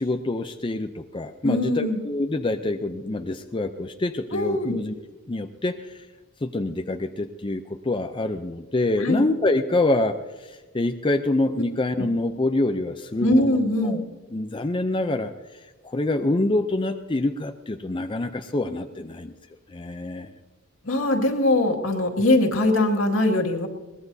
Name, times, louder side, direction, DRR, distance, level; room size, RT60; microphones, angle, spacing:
voice 1, 0.0-4.9 5.3-6.1 6.4-13.6 13.8-14.0 14.3-19.3 19.7-20.3, left 2 dB, 25° left, 6 dB, 0.5 m, -26 dB
voice 2, 1.4-2.0 4.3-4.8 9.0-9.2 12.0-12.1 13.2-14.0 20.8-23.7, left 1 dB, 70° left, 2 dB, 2.1 m, -22 dB
22.0 x 19.0 x 2.7 m, 1.2 s
head